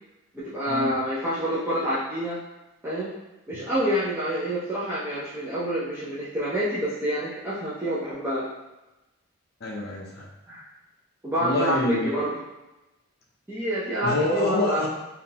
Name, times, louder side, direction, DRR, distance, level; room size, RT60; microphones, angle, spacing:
voice 1, 0.3-2.4 2.8-3.1 3.5-8.5 10.5-10.6 11.2-12.4 13.5-14.9, equal, 10° right, -11 dB, 0.5 m, -27 dB
voice 2, 9.6-10.3 11.4-12.1 14.0-14.9, left 1 dB, 45° left, -2 dB, 0.5 m, -26 dB
3.6 x 2.4 x 2.8 m, 1.0 s
head